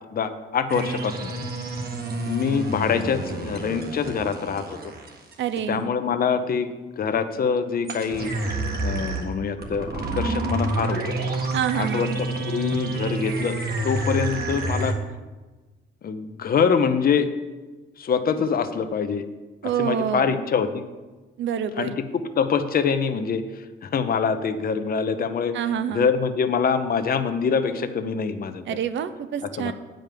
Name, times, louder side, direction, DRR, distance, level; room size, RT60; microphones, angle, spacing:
voice 1, 0.1-1.3 2.2-4.9 5.7-6.7 7.0-8.3 8.8-11.2 11.7-13.5 13.8-15.0 16.0-17.3 18.0-19.3 19.6-20.8 21.8-25.6 25.9-28.8 29.6-29.7, left 6 dB, 50° left, 9 dB, 0.8 m, -25 dB
sound 1, 0.7-5.6 7.9-14.9, right 2 dB, 50° right, 1.6 m, -29 dB
voice 2, 5.4-5.9 11.5-12.2 19.6-20.3 21.4-21.9 25.5-26.1 28.7-29.7, right 9 dB, 70° right, 12 dB, 0.7 m, -27 dB
9.0 x 5.2 x 7.6 m, 1.2 s
cardioid pair, 90°, 20 cm